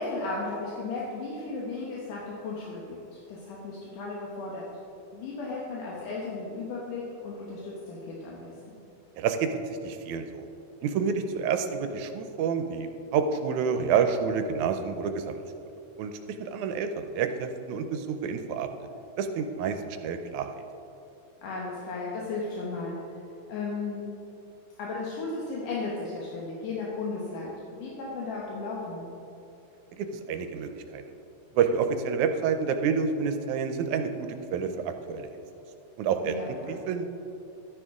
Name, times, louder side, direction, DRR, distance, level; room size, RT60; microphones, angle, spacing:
voice 1, 0.0-3.0 3.3-4.7 5.1-8.8 21.4-23.0 23.5-24.1 24.8-29.2 36.2-36.7, left 3 dB, 80° left, -4 dB, 2.7 m, -35 dB
voice 2, 9.2-9.6 9.8-10.4 10.8-15.4 16.0-16.1 16.4-18.7 19.2-20.5 29.9-31.0 31.6-35.3 36.0-36.4 36.7-37.0, right 6 dB, 80° right, 7 dB, 1.9 m, -28 dB
12.5 x 9.9 x 3.6 m, 2.8 s
omnidirectional pair, 3.6 m